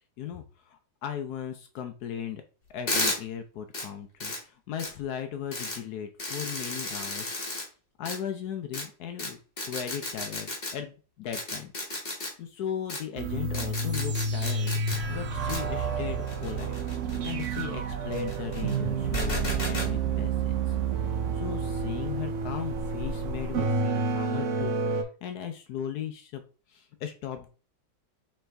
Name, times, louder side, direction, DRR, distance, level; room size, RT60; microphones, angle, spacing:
voice 1, 0.2-2.4 2.7-7.4 8.0-9.4 9.7-11.7 12.0-14.7 15.1-16.7 17.2-20.8 21.0-26.4 26.7-27.5, left 9 dB, 70° left, 6 dB, 1.0 m, -37 dB
sound 1, 2.9-3.2 3.7-3.8 4.2-4.4 4.8-4.9 5.5-5.8 6.2-7.6 8.0-8.2 8.7-8.8 9.2-9.3 9.6-10.7 11.3-12.3 12.9-13.0 13.5-15.0 15.5-15.6 16.3-17.6 18.1-18.8 19.1-19.9, left 2 dB, 35° left, 1.4 m, -33 dB
sound 2, 13.2-25.0, right 4 dB, 60° right, 0.8 m, -30 dB
sound 3, 14.9-23.7, right 4 dB, 85° right, 1.3 m, -39 dB
4.1 x 3.5 x 3.3 m, 0.36 s
omnidirectional pair, 1.9 m